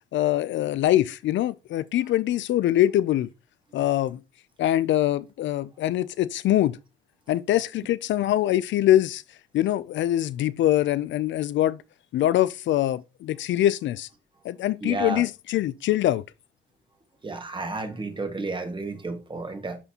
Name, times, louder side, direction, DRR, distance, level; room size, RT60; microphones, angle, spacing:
voice 1, 0.1-3.3 3.7-4.2 4.6-6.8 7.3-9.2 9.5-11.8 12.1-14.1 14.4-16.2, left 13 dB, 70° left, 0.4 m, -23 dB
voice 2, 14.8-15.2 17.2-19.8, right 3 dB, 25° right, 1.7 m, -32 dB
11.0 x 4.1 x 2.9 m
cardioid pair, 90°, 20 cm